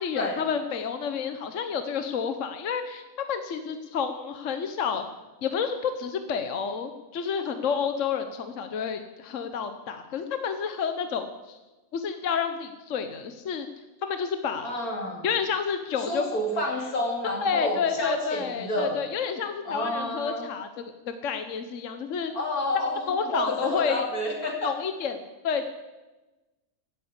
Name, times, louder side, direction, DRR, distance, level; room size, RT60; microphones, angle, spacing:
voice 1, 0.0-3.0 3.3-5.0 5.4-11.6 11.9-13.7 14.0-14.7 15.2-16.2 17.4-20.8 21.2-22.3 23.1-24.0 24.6-25.6, left 6 dB, 60° left, 8 dB, 1.2 m, -30 dB
voice 2, 14.6-15.3 16.1-19.0 19.7-20.5 22.3-24.7, left 1 dB, 90° left, 0 dB, 3.5 m, -29 dB
16.5 x 8.1 x 8.1 m, 1.1 s
omnidirectional pair, 1.5 m